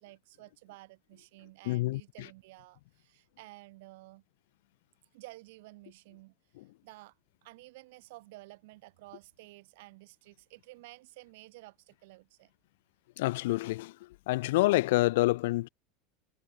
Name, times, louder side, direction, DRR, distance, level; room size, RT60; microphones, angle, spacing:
voice 1, 0.0-4.2 5.1-12.5, right 21 dB, 65° right, 5.0 m, -53 dB
voice 2, 1.7-2.0 13.2-13.9 14.3-15.7, left 19 dB, 75° left, 0.5 m, -27 dB
supercardioid pair, 170°, 0 cm